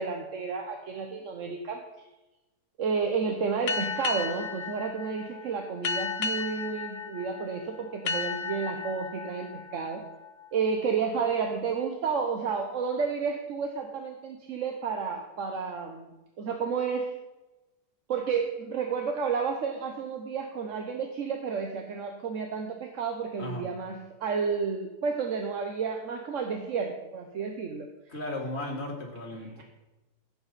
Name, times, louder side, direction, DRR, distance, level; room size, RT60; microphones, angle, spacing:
voice 1, 0.0-1.8 2.8-10.0 10.5-16.1 16.4-17.1 18.1-27.9, right 5 dB, 55° right, 4 dB, 1.2 m, -31 dB
sound 1, 3.7-11.0, left 4 dB, 60° left, 0.7 m, -35 dB
voice 2, 23.4-23.7 28.1-29.6, left 1 dB, 40° left, 0 dB, 2.4 m, -35 dB
15.5 x 8.0 x 4.1 m, 1.1 s
omnidirectional pair, 1.8 m